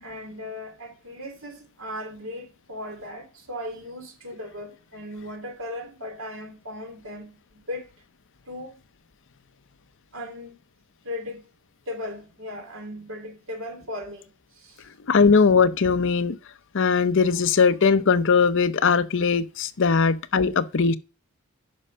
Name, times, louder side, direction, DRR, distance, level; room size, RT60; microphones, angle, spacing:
voice 1, 0.0-7.9 8.5-8.8 10.1-10.6 11.0-11.4 11.9-14.9, left 1 dB, 60° right, 2.7 m, -37 dB
voice 2, 15.1-16.4 16.7-21.0, left 5 dB, 55° left, 0.6 m, -20 dB
10.5 x 5.6 x 5.4 m
head